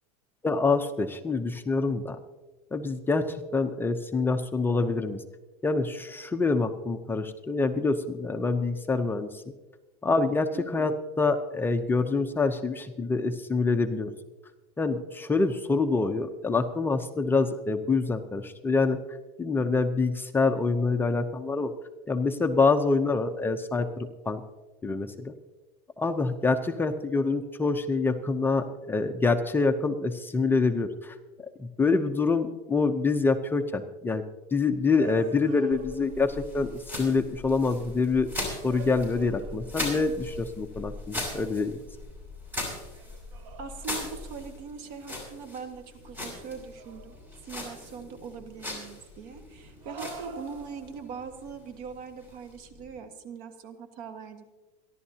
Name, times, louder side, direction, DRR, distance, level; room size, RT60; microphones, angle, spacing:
voice 1, 0.4-2.2 2.7-5.2 5.6-9.4 10.0-14.1 14.8-19.0 19.4-21.7 22.1-24.4 24.8-25.3 26.0-31.2 31.6-34.2 34.5-41.8, left 3 dB, 10° left, 6 dB, 0.7 m, -26 dB
voice 2, 10.5-10.9 43.6-54.5, right 5 dB, 55° right, 7 dB, 1.7 m, -41 dB
sound 1, 34.9-36.3 38.4-39.9 42.9-44.2 46.3-47.4 49.8-51.2, right 5 dB, 75° right, 1.6 m, -46 dB
sound 2, 35.7-53.0, left 2 dB, 10° right, 5.9 m, -40 dB
28.0 x 11.5 x 2.8 m, 1.1 s
supercardioid pair, 145°, 18 cm